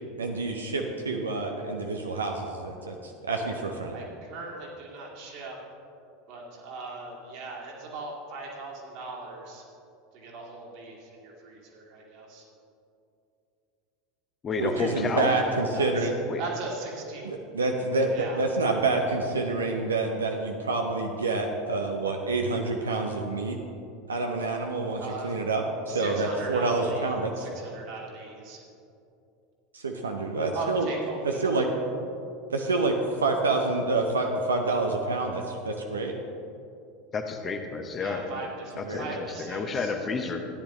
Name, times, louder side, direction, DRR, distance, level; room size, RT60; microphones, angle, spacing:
voice 1, 0.2-4.0 14.6-16.1 17.2-23.6 24.1-27.5 29.7-30.9 31.2-31.7 32.5-36.1 38.8-39.2, right 3 dB, 80° right, 2 dB, 0.7 m, -27 dB
voice 2, 3.9-5.6 6.3-9.6 10.1-12.4 15.4-16.1 16.4-17.3 18.1-18.4 25.0-25.3 25.9-27.1 27.4-28.6 30.5-31.5 37.9-39.9, right 3 dB, 55° right, -2 dB, 2.4 m, -39 dB
voice 3, 14.4-15.4 16.3-16.4 37.1-38.2 38.8-40.5, left 4 dB, 30° left, 4 dB, 1.0 m, -30 dB
14.0 x 10.0 x 3.0 m, 2.7 s
figure-of-eight pair, 80°, 0 cm